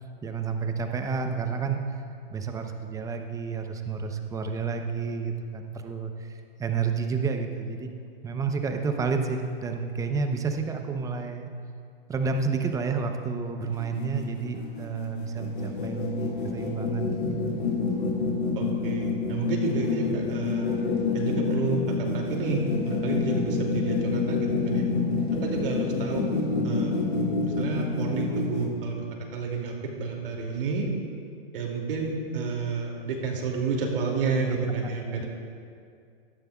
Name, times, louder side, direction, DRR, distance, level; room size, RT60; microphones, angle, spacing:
voice 1, 0.2-1.8 2.3-6.3 6.6-7.9 8.2-11.5 12.1-17.3 35.0-35.2, right 5 dB, 10° right, 5 dB, 0.7 m, -30 dB
sound 1, 13.6-28.7, left 4 dB, 90° left, 2.7 m, -28 dB
voice 2, 18.5-20.6 21.1-24.9 25.4-26.2 26.6-26.9 27.4-29.0 29.3-30.9 31.5-35.3, right 4 dB, 65° right, 0 dB, 2.6 m, -30 dB
16.5 x 13.5 x 2.4 m, 2.4 s
hypercardioid pair, 125°, 30 cm